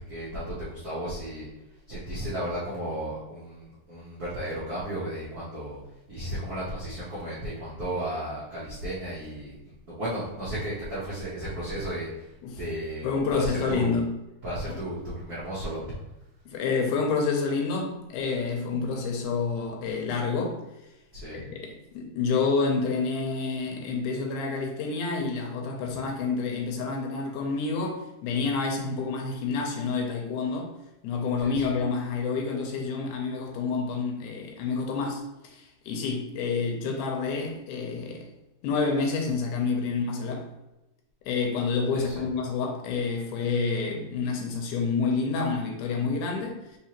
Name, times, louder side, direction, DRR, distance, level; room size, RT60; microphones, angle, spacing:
voice 1, 0.1-1.5 1.9-5.8 6.1-14.0 14.4-15.8 21.1-21.4 25.9-26.0 31.4-31.7 41.9-42.3, right 1 dB, 80° right, -9 dB, 0.8 m, -34 dB
voice 2, 13.0-14.1 14.7-14.8 16.5-20.6 21.3-30.7 31.0-38.3 38.6-40.5 41.3-46.6, left 4 dB, 90° left, 2 dB, 2.2 m, -28 dB
4.7 x 3.8 x 2.9 m, 0.94 s
omnidirectional pair, 3.6 m